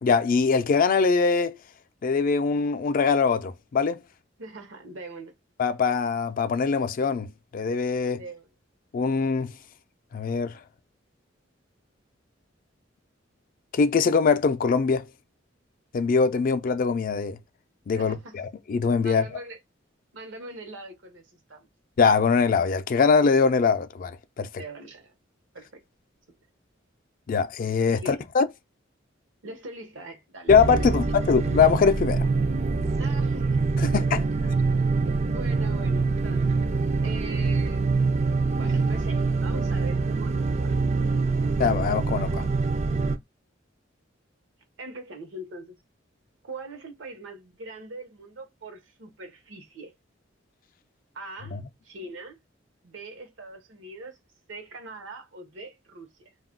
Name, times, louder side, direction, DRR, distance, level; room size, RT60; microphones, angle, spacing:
voice 1, 0.0-1.6 2.0-4.0 5.6-8.2 8.9-9.5 10.1-10.5 13.7-15.1 15.9-17.4 17.9-19.3 22.0-24.1 24.4-24.5 27.3-28.4 30.5-32.3 33.8-34.2 41.6-42.5 51.5-51.6, left 5 dB, 45° left, 0.3 m, -22 dB
voice 2, 4.4-5.3 8.2-8.5 18.0-18.4 19.0-19.6 20.1-21.7 24.6-25.1 25.5-25.8 27.9-28.2 29.4-31.0 33.0-34.1 35.1-36.6 37.0-37.9 38.6-40.8 44.8-45.8 46.4-49.9 51.1-51.6 51.8-52.4 52.8-54.2 54.5-56.3, right 2 dB, 85° right, 0.8 m, -42 dB
sound 1, 30.5-43.2, right 4 dB, 35° right, 0.3 m, -25 dB
2.3 x 2.1 x 3.6 m
head